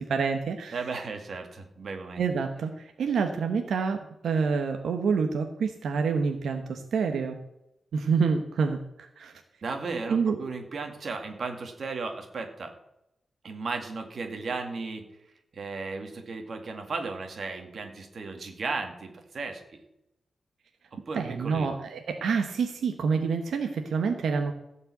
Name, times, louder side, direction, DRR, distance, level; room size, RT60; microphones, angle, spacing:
voice 1, 0.0-0.8 2.2-7.4 7.9-9.3 10.1-10.4 21.1-24.5, right 5 dB, 80° right, 5 dB, 1.2 m, -27 dB
voice 2, 0.7-2.2 9.6-12.7 13.4-15.1 15.5-19.8 20.9-21.7, right 4 dB, 45° right, 5 dB, 2.1 m, -35 dB
16.0 x 5.5 x 8.4 m, 0.85 s
wide cardioid pair, 165°, 0 cm